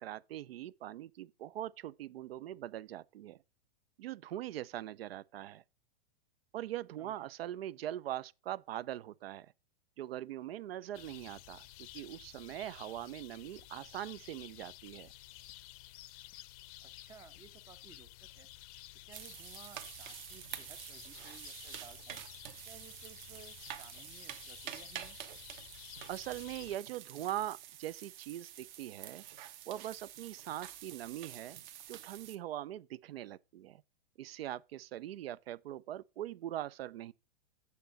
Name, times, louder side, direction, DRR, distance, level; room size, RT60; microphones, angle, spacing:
voice 1, 0.0-3.4 4.0-5.6 6.5-9.5 10.0-15.1 26.1-29.2 29.7-31.6 31.9-33.8 34.2-37.1, right 13 dB, 80° right, 0.5 m, -42 dB
voice 2, 7.0-7.3 16.8-18.5 19.1-22.2 22.6-25.2, right 7 dB, 10° right, 0.4 m, -58 dB
sound 1, 10.9-26.8, left 16 dB, 40° left, 0.5 m, -53 dB
sound 2, 19.1-32.4, right 11 dB, 50° right, 1.1 m, -48 dB
8.4 x 6.9 x 4.0 m
hypercardioid pair, 140°, 29 cm